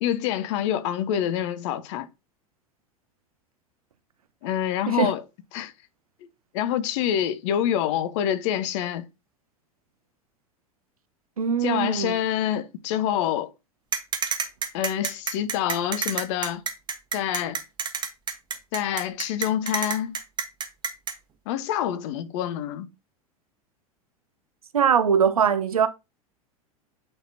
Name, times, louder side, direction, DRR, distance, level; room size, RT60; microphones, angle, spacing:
voice 1, 0.0-2.1 4.4-5.2 5.5-5.7 6.5-9.0 11.6-13.5 14.7-16.6 17.1-17.6 18.7-20.2 21.5-22.9, left 10 dB, 55° left, 0.9 m, -26 dB
voice 2, 11.4-12.2 24.7-25.9, right 7 dB, 80° right, 0.8 m, -21 dB
sound 1, 13.9-21.1, right 6 dB, 25° right, 1.2 m, -28 dB
8.8 x 4.3 x 2.7 m
figure-of-eight pair, 85°, 19 cm